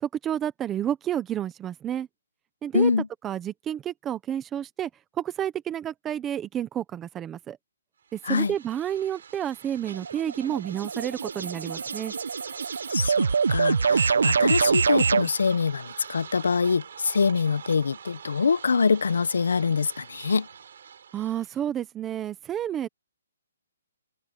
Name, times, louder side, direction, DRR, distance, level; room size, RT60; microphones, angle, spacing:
voice 1, 0.0-2.1 2.6-2.9 3.2-4.9 5.2-7.6 8.1-12.1 21.1-22.9, right 10 dB, 10° right, 0.8 m, -30 dB
voice 2, 2.7-3.1 8.2-8.5 12.9-20.5, left 5 dB, 75° left, 0.9 m, -24 dB
sound 1, 8.0-21.6, right 7 dB, 45° right, 7.3 m, -44 dB
sound 2, 9.9-15.3, right 5 dB, 75° right, 0.9 m, -25 dB
hypercardioid pair, 180°, 0 cm